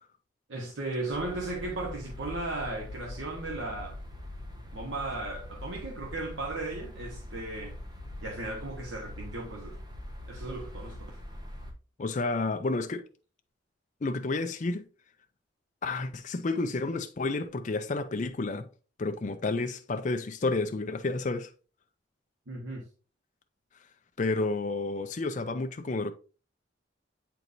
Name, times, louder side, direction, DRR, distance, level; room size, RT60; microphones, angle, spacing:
voice 1, 0.5-4.0 4.7-7.8 8.2-9.8 10.3-11.2 22.5-22.8, right 2 dB, 85° right, 1.2 m, -36 dB
sound 1, 1.1-11.7, left 1 dB, 20° right, 1.0 m, -43 dB
voice 2, 12.0-13.0 14.0-14.9 15.8-18.7 19.0-21.5 24.2-26.1, left 3 dB, 40° left, 0.5 m, -30 dB
8.0 x 4.6 x 2.6 m
head